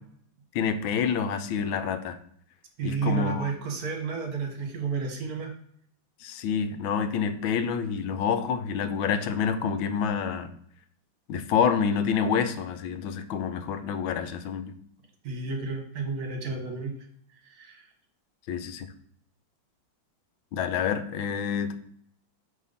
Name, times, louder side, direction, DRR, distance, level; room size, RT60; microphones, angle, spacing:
voice 1, 0.5-2.2 2.8-3.5 6.2-10.5 11.3-14.7 18.5-18.9 20.5-21.8, left 7 dB, 90° left, 10 dB, 1.4 m, -28 dB
voice 2, 2.8-5.5 15.2-16.9 17.5-17.9, right 5 dB, 55° right, 3 dB, 1.5 m, -31 dB
5.7 x 3.4 x 5.3 m, 0.65 s
omnidirectional pair, 2.1 m